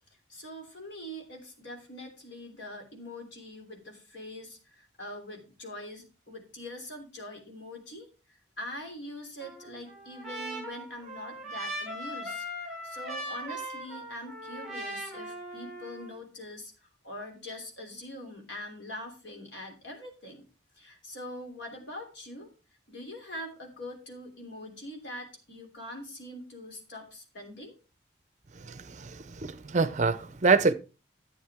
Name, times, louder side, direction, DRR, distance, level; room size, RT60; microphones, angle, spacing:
voice 1, 0.3-20.4 20.7-22.5 22.9-27.7, left 1 dB, 70° left, 3.1 m, -43 dB
Trumpet, 9.4-16.1, right 1 dB, 5° right, 4.0 m, -39 dB
voice 2, 28.6-30.7, right 4 dB, 40° right, 0.5 m, -26 dB
11.5 x 8.5 x 3.6 m
head